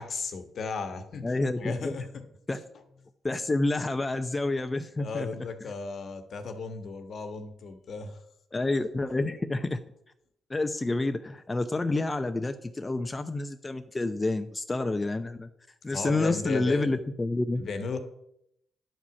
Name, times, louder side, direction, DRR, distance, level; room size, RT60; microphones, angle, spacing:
voice 1, 0.0-1.3 1.6-2.2 5.0-8.2 15.9-17.0 17.6-18.0, left 4 dB, 65° left, 7 dB, 1.4 m, -35 dB
voice 2, 1.2-1.9 2.5-2.6 3.2-5.3 8.5-9.8 10.5-15.5 15.8-17.6, left 2 dB, 25° left, 7 dB, 0.7 m, -28 dB
10.5 x 4.8 x 7.0 m, 0.77 s
supercardioid pair, 50°, 0 cm